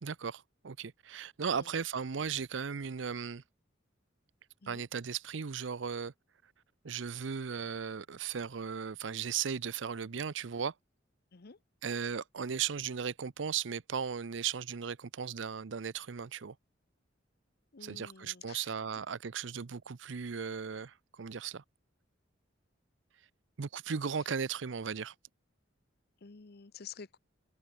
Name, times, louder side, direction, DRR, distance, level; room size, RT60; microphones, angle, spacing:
voice 1, 0.0-3.4 4.7-6.1 6.8-10.7 11.8-16.6 17.8-21.6 23.6-25.1, right 6 dB, 70° right, 0.6 m, -36 dB
voice 2, 17.7-18.7 26.2-27.2, left 6 dB, 55° left, 0.8 m, -50 dB
open air
head